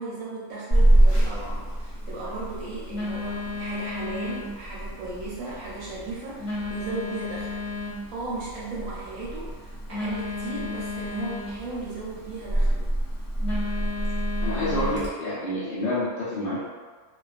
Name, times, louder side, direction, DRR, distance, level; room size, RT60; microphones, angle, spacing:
voice 1, 0.0-7.6 8.1-12.9, right 3 dB, 75° right, -7 dB, 0.9 m, -36 dB
Telephone, 0.7-15.1, equal, 45° left, 0.8 m, -27 dB
voice 2, 14.4-16.6, left 1 dB, 80° left, -9 dB, 0.5 m, -28 dB
2.3 x 2.2 x 2.3 m, 1.4 s
omnidirectional pair, 1.6 m